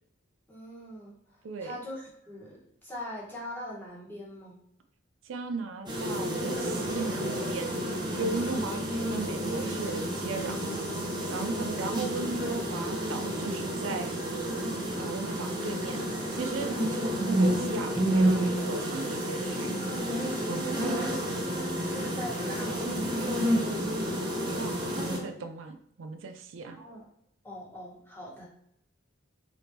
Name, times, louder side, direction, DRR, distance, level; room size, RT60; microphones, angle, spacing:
voice 1, 0.5-4.6 11.4-11.6 20.9-23.4 26.8-27.0 27.4-28.5, equal, 10° left, -5 dB, 1.3 m, -42 dB
voice 2, 1.4-1.8 5.2-7.8 8.1-10.8 11.3-14.1 15.0-19.7 20.5-21.1 24.4-26.8, right 3 dB, 80° right, 8 dB, 0.4 m, -37 dB
sound 1, 5.9-25.2, right 1 dB, 25° right, 0.8 m, -30 dB
3.8 x 3.5 x 2.9 m, 0.74 s
head